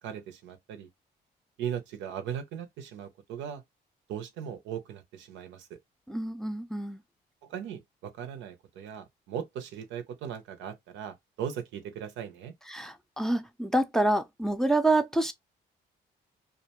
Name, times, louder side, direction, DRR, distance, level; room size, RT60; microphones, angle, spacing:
voice 1, 0.0-0.9 1.6-3.6 4.1-5.8 7.4-12.5, right 8 dB, 85° right, 0.6 m, -38 dB
voice 2, 6.1-7.0 12.7-15.3, right 2 dB, ahead, 0.5 m, -27 dB
2.5 x 2.2 x 2.8 m
supercardioid pair, 70°, 19 cm